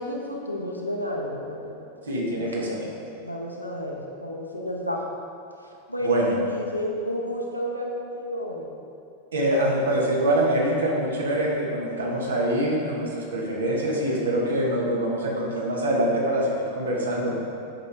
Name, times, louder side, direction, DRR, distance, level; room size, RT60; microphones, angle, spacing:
voice 1, 0.0-1.8 2.3-2.8 3.2-5.0 5.9-8.7, left 1 dB, 90° left, -2 dB, 0.9 m, -31 dB
voice 2, 2.1-2.9 6.0-6.4 9.3-17.4, right 1 dB, 70° right, -2 dB, 1.3 m, -24 dB
8.0 x 5.3 x 3.5 m, 2.5 s
figure-of-eight pair, 90°, 0 cm